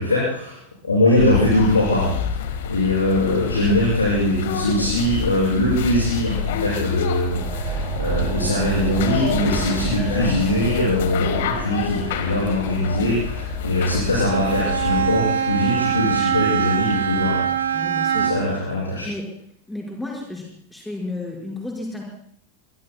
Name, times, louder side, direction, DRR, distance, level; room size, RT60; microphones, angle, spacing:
voice 1, 0.0-2.1 2.6-17.4 18.1-19.1, left 1 dB, 75° left, -6 dB, 6.8 m, -21 dB
sound 1, 1.2-15.2, left 8 dB, 55° left, 1.7 m, -28 dB
sound 2, 6.4-17.6, right 4 dB, 30° right, 4.3 m, -32 dB
Bowed string instrument, 14.2-18.6, right 8 dB, 65° right, 1.1 m, -23 dB
voice 2, 17.7-18.3 19.0-19.3 19.7-20.5 20.7-22.0, left 2 dB, 5° left, -3 dB, 5.5 m, -32 dB
25.0 x 24.0 x 2.3 m, 0.66 s
figure-of-eight pair, 90°, 0 cm